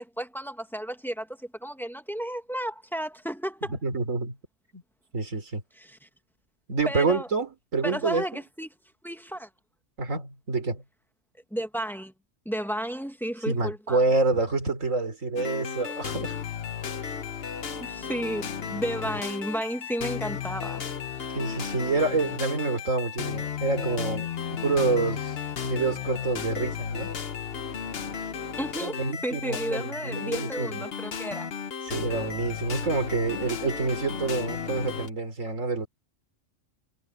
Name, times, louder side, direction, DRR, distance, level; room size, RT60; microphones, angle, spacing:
voice 1, 0.0-3.8 5.8-6.0 6.9-7.3 7.8-8.7 9.0-9.5 11.5-12.1 12.4-14.0 17.8-20.8 28.6-31.5, equal, ahead, 1.4 m, -33 dB
voice 2, 3.7-4.4 4.7-4.8 5.1-5.6 6.7-8.4 10.0-10.8 13.5-16.4 17.0-17.2 21.3-25.4 25.6-27.2 28.8-30.8 31.8-35.9, right 3 dB, 75° right, 3.7 m, -27 dB
sound 1, 15.4-35.1, left 7 dB, 50° left, 1.2 m, -34 dB
omnidirectional pair, 1.3 m